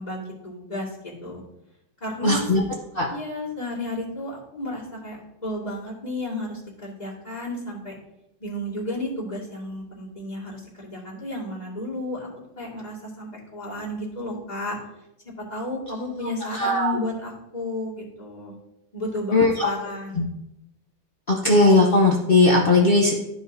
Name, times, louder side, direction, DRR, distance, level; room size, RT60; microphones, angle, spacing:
voice 1, 0.0-1.4 2.0-2.5 3.1-7.9 8.4-12.3 12.6-14.8 15.5-18.5 18.9-20.2, left 1 dB, 20° left, -6 dB, 2.1 m, -32 dB
voice 2, 2.2-2.6 3.0-3.1 16.5-17.0 19.3-19.7 21.4-23.1, left 2 dB, 70° left, -1 dB, 0.5 m, -18 dB
12.5 x 4.8 x 2.7 m, 0.87 s
omnidirectional pair, 2.2 m